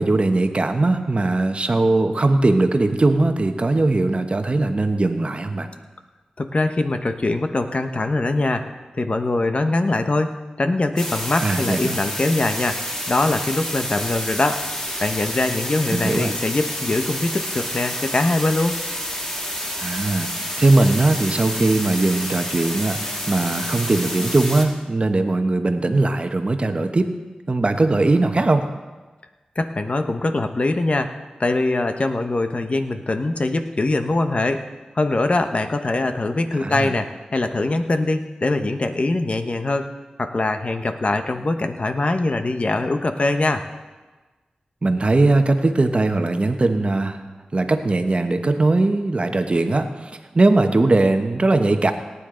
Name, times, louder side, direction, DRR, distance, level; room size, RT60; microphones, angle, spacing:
voice 1, 0.0-5.7 11.4-12.0 15.9-16.4 19.8-27.1 27.5-28.6 36.6-36.9 44.8-47.2 47.5-51.9, right 2 dB, 45° right, 7 dB, 1.1 m, -20 dB
voice 2, 6.4-14.6 15.0-18.8 29.6-31.1 31.4-34.7 34.9-39.9 40.2-43.6, left 2 dB, 50° left, 7 dB, 1.0 m, -22 dB
sound 1, 11.0-24.7, equal, 15° left, 2.2 m, -29 dB
18.5 x 9.7 x 3.8 m, 1.3 s
cardioid pair, 45°, 3 cm